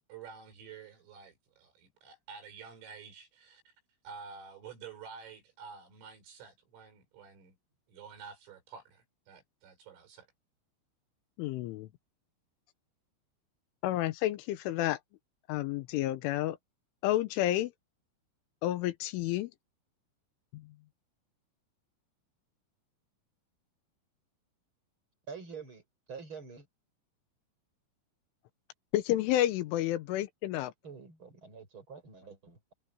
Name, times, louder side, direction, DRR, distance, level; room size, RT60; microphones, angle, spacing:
voice 1, 0.1-3.6 4.0-7.6 7.9-10.3, right 6 dB, 85° right, 8.3 m, -49 dB
voice 2, 11.4-11.9 13.8-15.0 15.5-16.6 17.0-17.7 18.6-19.5 20.5-20.6 28.9-30.7, left 14 dB, 85° left, 3.3 m, -30 dB
voice 3, 25.3-25.8 26.1-26.7 30.8-32.7, right 5 dB, 25° right, 6.6 m, -46 dB
omnidirectional pair, 5.8 m